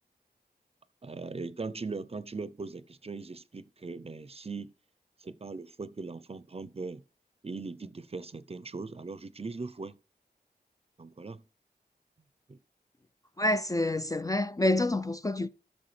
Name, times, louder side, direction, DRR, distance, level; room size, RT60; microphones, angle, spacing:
voice 1, 1.0-4.7 5.2-7.0 7.4-10.0 11.0-11.4 12.5-12.6, right 3 dB, 35° right, 0.5 m, -39 dB
voice 2, 13.4-15.5, left 1 dB, 20° left, 0.3 m, -27 dB
12.5 x 6.3 x 3.3 m
wide cardioid pair, 65°, 17 cm